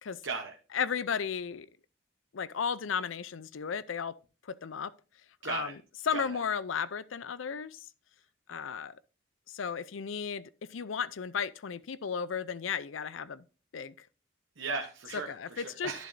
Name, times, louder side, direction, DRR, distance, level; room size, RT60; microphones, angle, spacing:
voice 1, 0.2-0.5 5.4-5.7 6.1-6.3 14.6-16.1, right 4 dB, 75° right, 1.1 m, -36 dB
voice 2, 0.7-1.7 2.3-4.1 4.4-4.9 5.4-5.8 6.0-7.9 8.5-9.0 9.5-13.4 13.7-14.1 15.1-15.9, left 6 dB, 80° left, 0.5 m, -34 dB
11.5 x 7.2 x 2.6 m
head